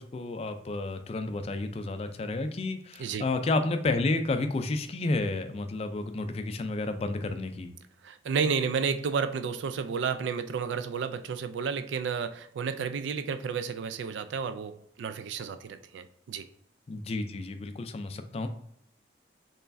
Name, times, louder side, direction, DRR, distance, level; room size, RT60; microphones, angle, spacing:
voice 1, 0.0-7.7 16.9-18.5, left 2 dB, 35° left, 8 dB, 0.3 m, -31 dB
voice 2, 8.0-16.5, right 6 dB, 75° right, 11 dB, 0.3 m, -31 dB
4.5 x 3.1 x 2.5 m, 0.71 s
head